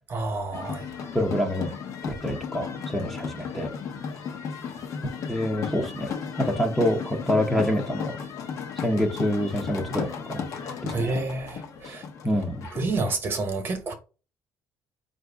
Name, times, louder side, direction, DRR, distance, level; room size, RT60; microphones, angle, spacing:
voice 1, 0.1-0.9 10.9-12.0 12.7-13.9, right 3 dB, 35° right, 1.0 m, -29 dB
sound 1, 0.5-13.2, left 6 dB, 55° left, 0.8 m, -35 dB
voice 2, 1.1-1.7 2.0-3.7 5.3-6.1 6.4-8.2 8.8-10.5 10.8-11.1 11.8-11.9 12.2-12.7, equal, 5° left, 0.7 m, -26 dB
4.6 x 2.6 x 3.4 m
cardioid pair, 145°, 7 cm